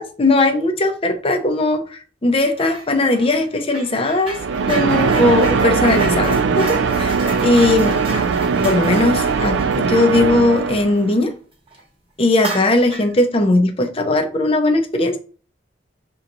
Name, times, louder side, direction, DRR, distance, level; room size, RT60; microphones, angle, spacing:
voice 1, 0.0-4.3 4.7-8.0 8.6-9.6 9.9-11.3 12.2-15.2, left 2 dB, 30° left, 0.6 m, -18 dB
sound 1, 2.5-2.9 3.1-11.3 11.7-11.8 12.3-13.2, right 2 dB, 30° right, 1.0 m, -32 dB
sound 2, 4.3-11.1, right 5 dB, 70° right, 0.4 m, -20 dB
5.6 x 3.0 x 2.5 m
head